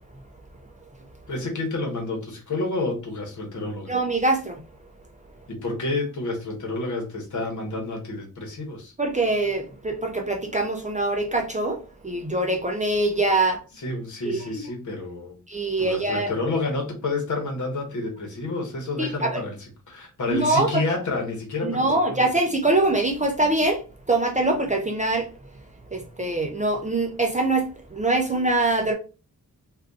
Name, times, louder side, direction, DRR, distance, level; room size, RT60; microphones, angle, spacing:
voice 1, 1.3-3.9 5.5-8.9 13.7-15.4 15.8-22.3, left 2 dB, 55° left, 1.1 m, -29 dB
voice 2, 3.9-4.6 9.0-13.6 14.3-14.6 15.5-16.3 19.0-19.4 20.3-20.8 21.6-23.8 24.1-25.3 25.9-28.9, right 2 dB, 20° right, 0.4 m, -23 dB
2.6 x 2.5 x 3.5 m
wide cardioid pair, 175°, 35 cm